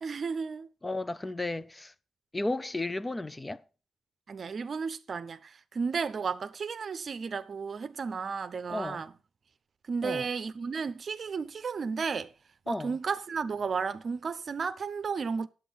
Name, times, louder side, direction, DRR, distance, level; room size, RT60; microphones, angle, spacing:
voice 1, 0.0-0.7 4.3-9.1 9.9-12.3 12.7-15.5, right 5 dB, 55° right, 0.6 m, -33 dB
voice 2, 0.8-1.9 2.3-3.6 8.7-9.0 10.0-10.3 12.7-13.0, left 2 dB, 20° left, 0.6 m, -33 dB
9.2 x 8.0 x 5.3 m
supercardioid pair, 50°, 0 cm